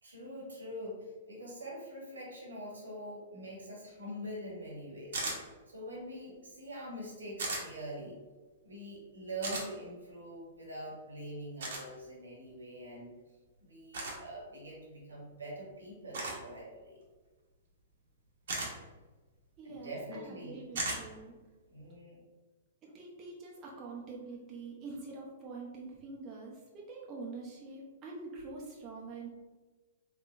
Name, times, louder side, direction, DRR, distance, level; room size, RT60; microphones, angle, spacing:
voice 1, 0.0-5.2 5.7-8.2 8.6-13.1 13.6-17.0 19.6-20.6 21.7-22.2, equal, 85° right, -3 dB, 1.4 m, -44 dB
sound 1, 5.1-5.4 7.4-7.6 9.4-9.6 11.6-11.8 13.9-14.2 16.1-16.4 18.5-18.7 20.7-21.0, right 2 dB, 70° right, 1.1 m, -35 dB
voice 2, 19.6-21.3 22.8-29.3, right 3 dB, 30° right, -3 dB, 0.8 m, -45 dB
3.6 x 3.2 x 2.5 m, 1.3 s
hypercardioid pair, 115°, 0 cm